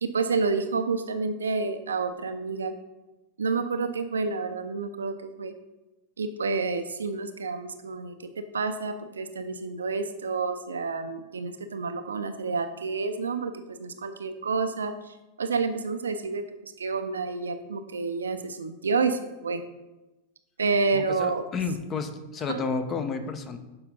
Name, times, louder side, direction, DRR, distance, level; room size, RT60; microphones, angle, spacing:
voice 1, 0.0-2.7 3.4-5.5 6.2-19.6 20.6-21.4 22.5-22.6, right 4 dB, 70° right, 8 dB, 0.6 m, -29 dB
voice 2, 20.9-23.6, left 4 dB, 25° left, 8 dB, 0.8 m, -31 dB
7.0 x 4.9 x 5.3 m, 1.0 s
figure-of-eight pair, 90°, 0 cm